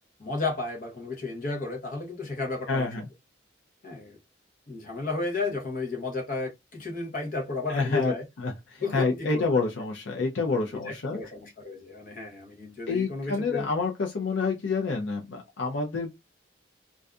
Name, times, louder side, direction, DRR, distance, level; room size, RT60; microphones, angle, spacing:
voice 1, 0.2-2.9 3.8-4.2 4.7-8.2 8.8-9.5 10.7-13.7, left 3 dB, 45° left, 0.8 m, -33 dB
voice 2, 2.7-3.0 7.7-11.2 12.9-16.1, left 4 dB, 70° left, 0.5 m, -28 dB
2.6 x 2.3 x 2.3 m
head